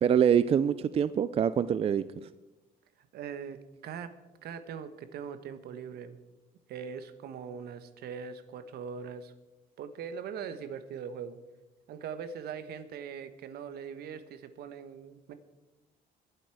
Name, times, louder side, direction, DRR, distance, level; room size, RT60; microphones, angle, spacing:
voice 1, 0.0-2.3, right 8 dB, 35° right, 15 dB, 0.4 m, -25 dB
voice 2, 3.0-4.1 4.4-6.2 6.7-9.3 9.8-11.4 11.9-15.3, right 7 dB, 70° right, 11 dB, 1.3 m, -41 dB
24.0 x 8.1 x 4.8 m, 1.1 s
cardioid pair, 110°, 17 cm